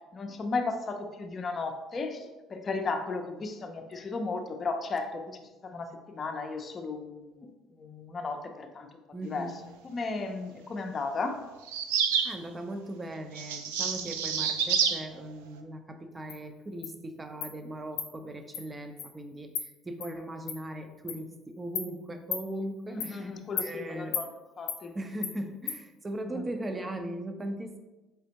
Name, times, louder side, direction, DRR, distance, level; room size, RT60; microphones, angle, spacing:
voice 1, 0.1-8.9 9.2-9.5 9.8-11.4 22.9-24.3 24.6-24.9 26.3-26.4, left 3 dB, 40° left, 4 dB, 0.5 m, -35 dB
voice 2, 9.1-9.6 12.2-23.3 23.6-24.2 24.9-27.8, right 1 dB, 25° right, 6 dB, 0.6 m, -38 dB
sound 1, 11.7-12.4 13.3-15.0, right 7 dB, 90° right, 0.3 m, -28 dB
Insect, 16.3-16.4 16.8-16.9 17.4-17.5 18.0-18.1 18.5-18.6 19.0-19.1 19.5-19.7 20.0-20.1 20.5-20.6 21.1-21.2 21.8-21.9 22.3-22.4 23.0-23.1 23.6-23.7 24.1-24.3 24.7-24.8 25.2-25.3 25.7-25.8, left 8 dB, 85° left, 0.5 m, -34 dB
4.1 x 3.4 x 2.9 m, 1.1 s
hypercardioid pair, 70°, 0 cm